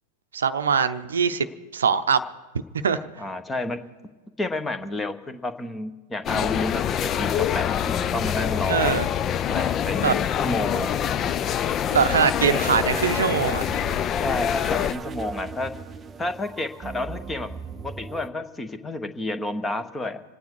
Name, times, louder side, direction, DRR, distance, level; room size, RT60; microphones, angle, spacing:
voice 1, 0.3-1.5 1.7-2.2 2.8-3.1 8.7-9.1 10.0-10.1 11.9-13.8, right 6 dB, 70° right, 11 dB, 0.7 m, -22 dB
voice 2, 3.2-3.8 4.4-8.9 9.5-11.0 14.2-15.7 16.2-17.5 17.8-20.2, left 2 dB, 15° left, 11 dB, 1.0 m, -30 dB
sound 1, 6.3-14.9, left 9 dB, 30° left, 0.5 m, -25 dB
sound 2, 12.6-18.3, right 5 dB, 20° right, 0.6 m, -38 dB
27.0 x 9.4 x 4.6 m, 1.3 s
figure-of-eight pair, 90°, 0 cm